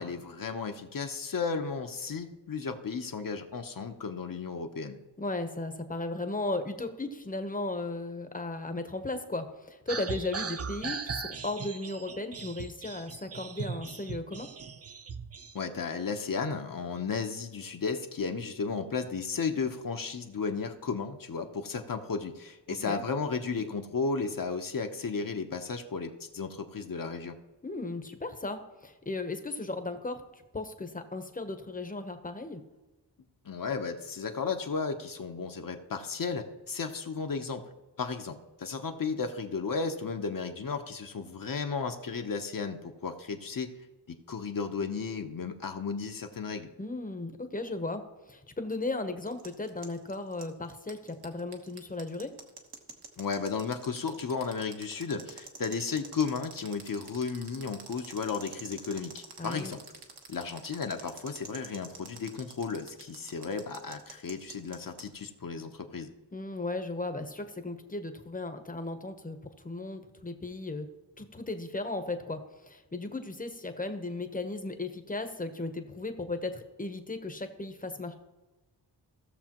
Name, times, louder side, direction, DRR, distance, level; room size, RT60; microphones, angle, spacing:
voice 1, 0.0-5.0 15.5-27.4 33.4-37.6 38.0-43.7 44.1-46.7 53.2-59.8 60.3-66.1, left 5 dB, 50° left, 5 dB, 0.8 m, -34 dB
voice 2, 5.2-14.5 22.9-23.0 27.6-32.6 46.8-52.3 59.4-59.7 66.3-69.4 69.6-70.9 71.2-78.1, left 2 dB, 20° left, 7 dB, 0.9 m, -36 dB
sound 1, 9.9-15.6, right 5 dB, 35° right, 0.5 m, -39 dB
sound 2, 49.3-65.1, right 5 dB, 65° right, 1.3 m, -47 dB
16.5 x 6.7 x 3.0 m, 1.1 s
wide cardioid pair, 120°, 42 cm